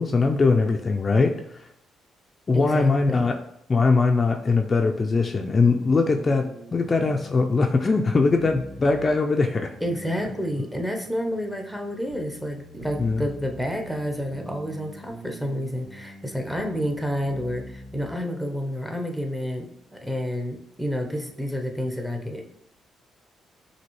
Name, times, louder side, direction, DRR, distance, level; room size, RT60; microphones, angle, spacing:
voice 1, 0.0-1.6 2.5-3.4 3.7-9.7 13.0-13.3, left 3 dB, 35° left, 3 dB, 0.3 m, -21 dB
voice 2, 2.5-3.3 9.8-22.4, equal, ahead, 3 dB, 0.7 m, -29 dB
sound 1, 5.1-18.1, equal, 90° right, 1.3 m, -44 dB
5.8 x 2.7 x 3.0 m, 0.76 s
cardioid pair, 90°, 0 cm